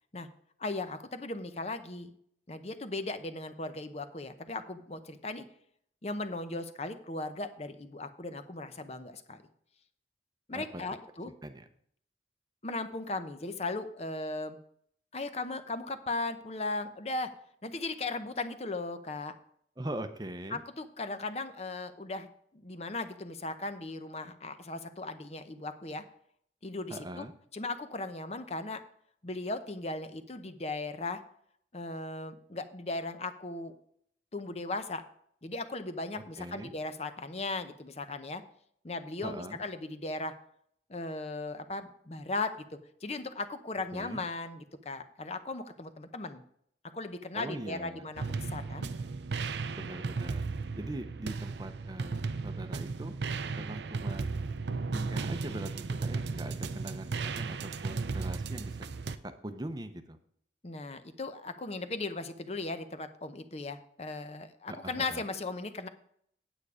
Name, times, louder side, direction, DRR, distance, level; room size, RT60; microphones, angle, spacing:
voice 1, 0.6-2.1 2.5-5.4 6.0-9.4 10.5-11.3 12.6-14.6 15.1-17.3 17.6-19.3 20.5-22.3 22.5-26.0 26.6-27.2 27.5-28.8 29.2-31.2 31.7-33.7 34.3-35.0 35.4-38.4 38.8-40.3 40.9-42.5 43.0-46.4 46.9-48.9 60.6-65.9, left 2 dB, 35° left, 10 dB, 0.7 m, -37 dB
voice 2, 19.8-20.6 26.9-27.3 36.2-36.7 39.2-39.6 43.9-44.2 47.3-48.0 49.8-50.4 50.8-53.1 53.6-54.5 54.9-55.7 56.0-58.8 59.1-59.2 59.4-60.2 64.7-65.2, right 1 dB, 20° right, 9 dB, 0.7 m, -41 dB
sound 1, 48.2-59.2, right 4 dB, 75° right, 0.6 m, -35 dB
9.1 x 8.4 x 4.9 m, 0.66 s
head